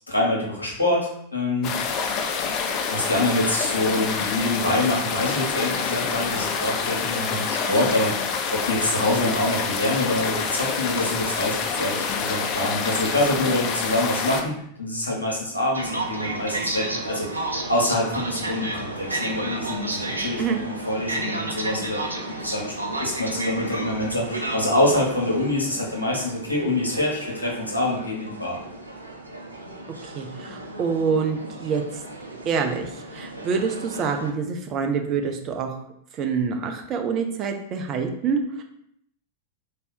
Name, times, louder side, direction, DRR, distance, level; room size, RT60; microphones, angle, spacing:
voice 1, 0.1-1.7 2.9-28.6, left 1 dB, 85° left, -3 dB, 1.1 m, -26 dB
sound 1, 1.6-14.4, left 5 dB, 40° left, 0.5 m, -27 dB
sound 2, 15.7-34.3, right 2 dB, 80° right, 0.5 m, -32 dB
voice 2, 30.0-31.8 32.5-35.7 36.1-38.6, right 5 dB, 35° right, 4 dB, 0.5 m, -26 dB
3.4 x 2.8 x 4.2 m, 0.72 s
figure-of-eight pair, 90°, 0 cm